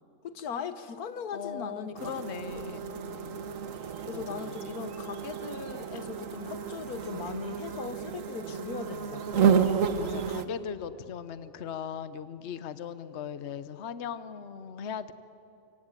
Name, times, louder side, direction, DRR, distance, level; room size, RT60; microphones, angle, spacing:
voice 1, 0.2-2.1 2.6-2.8 4.1-9.6, left 6 dB, 90° left, 12 dB, 1.6 m, -39 dB
voice 2, 1.3-3.4 4.1-4.8 10.0-15.1, left 8 dB, 50° left, 13 dB, 1.1 m, -39 dB
sound 1, 2.0-10.5, right 7 dB, 65° right, 1.4 m, -31 dB
25.0 x 23.5 x 9.0 m, 3.0 s
omnidirectional pair, 1.5 m